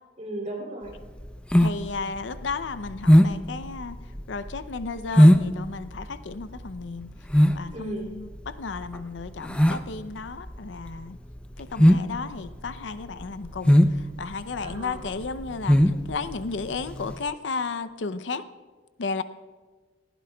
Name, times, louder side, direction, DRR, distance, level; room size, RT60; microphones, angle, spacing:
voice 1, 0.2-0.9 7.7-8.1 14.6-15.1, right 1 dB, 40° right, 0 dB, 3.1 m, -36 dB
sound 1, 0.9-17.2, equal, 5° left, 0.5 m, -21 dB
voice 2, 1.6-4.0 4.3-7.1 7.5-11.2 11.6-18.4 19.0-19.2, left 4 dB, 90° left, 13 dB, 0.6 m, -33 dB
19.5 x 15.0 x 2.3 m, 1.4 s
head